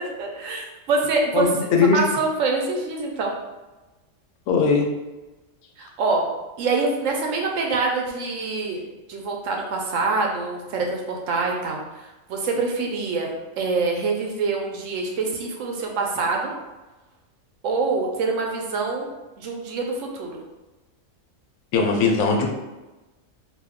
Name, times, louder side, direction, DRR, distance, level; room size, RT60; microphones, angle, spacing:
voice 1, 0.2-1.5 1.8-3.3 5.8-6.3 6.6-8.8 9.1-11.8 12.3-16.5 17.6-19.1 19.4-20.4, right 3 dB, 75° right, 1 dB, 1.0 m, -25 dB
voice 2, 1.3-2.0 4.5-4.9 21.7-22.5, left 4 dB, 85° left, 2 dB, 1.0 m, -19 dB
2.6 x 2.3 x 3.5 m, 1.1 s
omnidirectional pair, 1.4 m